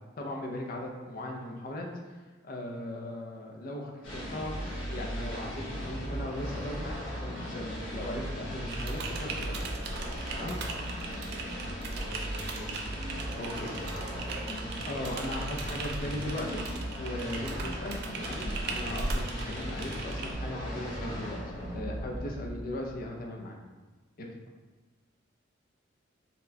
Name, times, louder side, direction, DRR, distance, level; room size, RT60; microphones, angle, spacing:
voice 1, 0.0-1.9 2.4-4.5 4.9-10.0 10.4-10.6 13.4-13.8 14.9-16.6 17.0-23.6 24.2-24.3, left 1 dB, 45° left, 0 dB, 0.4 m, -38 dB
sound 1, 4.0-23.0, equal, 70° left, 0.9 m, -37 dB
Typing, 8.7-20.3, right 3 dB, 55° right, 0.3 m, -39 dB
voice 2, 12.0-12.8 13.8-14.6, right 1 dB, 75° right, -7 dB, 0.7 m, -46 dB
4.1 x 2.2 x 2.7 m, 1.3 s
head